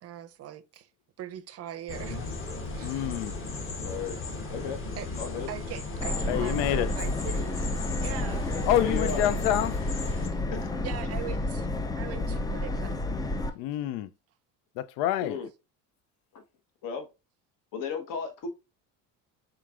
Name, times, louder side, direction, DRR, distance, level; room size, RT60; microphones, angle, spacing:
voice 1, 0.0-0.9 1.2-2.2 2.7-3.2 5.0-5.1 5.5-7.6 8.0-8.5 10.3-10.5 10.8-11.7 12.0-13.2, right 11 dB, 40° right, 0.6 m, -41 dB
sound 1, 1.9-10.3, left 3 dB, 35° left, 1.2 m, -35 dB
voice 2, 2.8-3.4 6.3-6.9 8.7-9.9 13.5-14.1 14.8-15.4, left 12 dB, 80° left, 0.5 m, -27 dB
voice 3, 3.8-4.2 4.5-4.8 5.2-5.5 6.1-6.2 8.7-9.3 10.5-10.7 15.2-15.5 16.3-16.4 16.8-17.1 17.7-18.5, left 6 dB, 60° left, 1.1 m, -34 dB
Subway metro underground, 6.0-13.5, left 2 dB, 10° left, 0.3 m, -31 dB
4.5 x 3.7 x 2.4 m
supercardioid pair, 100°, 37 cm